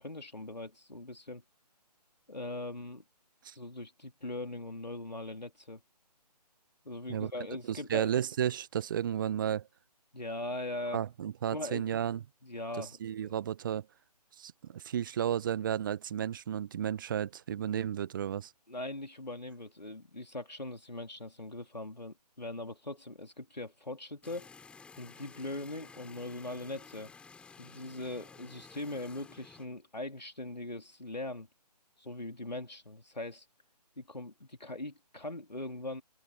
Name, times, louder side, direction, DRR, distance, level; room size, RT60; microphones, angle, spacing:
voice 1, 0.0-1.4 2.3-3.0 3.5-5.8 6.8-8.1 10.1-11.0 11.5-11.8 12.4-13.3 18.7-24.5 25.0-27.1 27.6-31.5 32.0-33.5 34.0-36.0, left 2 dB, 85° left, 2.9 m, -41 dB
voice 2, 7.7-9.7 10.9-12.2 12.8-13.9 14.4-18.5, right 9 dB, 30° right, 1.2 m, -33 dB
sound 1, 24.2-29.7, left 5 dB, 5° left, 7.5 m, -53 dB
open air
figure-of-eight pair, 145°, 21 cm